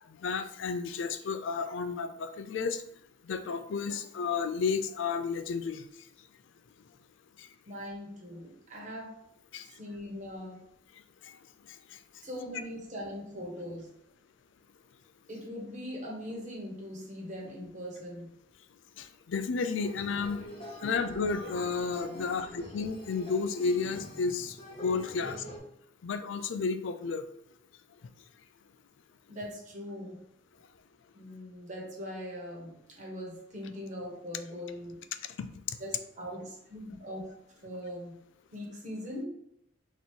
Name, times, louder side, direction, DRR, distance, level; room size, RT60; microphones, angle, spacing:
voice 1, 0.2-2.8 3.2-5.9 7.4-7.5 9.5-9.7 11.2-11.4 19.0-20.4 20.8-25.4 26.0-27.2 35.4-35.5, left 5 dB, 65° left, 9 dB, 0.4 m, -32 dB
voice 2, 7.6-9.1 9.6-10.6 12.2-13.9 15.3-18.3 29.3-30.2 31.1-35.0 35.8-37.3 37.6-38.2 38.5-39.2, equal, 40° right, -3 dB, 1.3 m, -41 dB
sound 1, 19.7-25.6, equal, 30° left, 0.8 m, -44 dB
3.9 x 3.0 x 3.7 m, 0.75 s
head